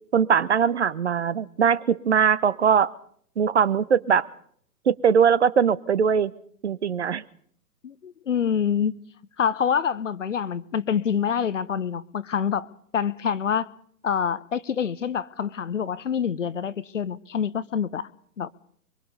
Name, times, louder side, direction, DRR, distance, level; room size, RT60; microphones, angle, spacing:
voice 1, 0.1-2.9 3.4-4.3 4.9-6.3 6.6-7.2, right 7 dB, 45° right, 0.9 m, -21 dB
voice 2, 7.8-8.9 9.4-12.7 12.9-13.7 14.0-18.1 18.4-18.5, left 7 dB, 50° left, 0.9 m, -26 dB
24.0 x 23.5 x 5.4 m
figure-of-eight pair, 130°, 49 cm